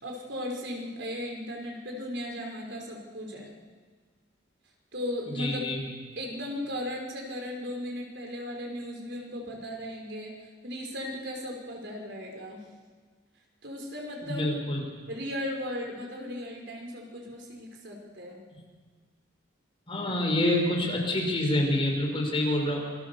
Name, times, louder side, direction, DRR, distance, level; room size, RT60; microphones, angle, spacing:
voice 1, 0.0-3.5 4.9-5.7 6.2-10.3 10.6-12.6 13.6-14.5 15.1-18.4, left 1 dB, 60° right, 1 dB, 5.1 m, -36 dB
voice 2, 5.3-5.8 14.2-14.8 19.9-22.8, left 1 dB, 25° left, 0 dB, 5.4 m, -27 dB
27.0 x 22.5 x 7.1 m, 1.5 s
head